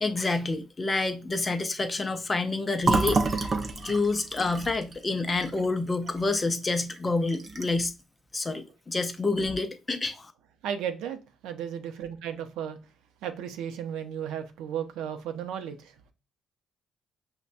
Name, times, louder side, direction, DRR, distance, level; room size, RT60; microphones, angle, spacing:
voice 1, 0.0-3.5 3.8-7.9 8.3-10.3, left 3 dB, 25° left, 0.5 m, -28 dB
Fill (with liquid), 2.8-6.5 6.8-7.0 7.3-7.9, right 3 dB, 35° right, 0.5 m, -29 dB
voice 2, 10.6-12.8 13.2-15.9, right 9 dB, 85° right, 0.5 m, -34 dB
5.4 x 2.1 x 2.5 m
cardioid pair, 95°, 0 cm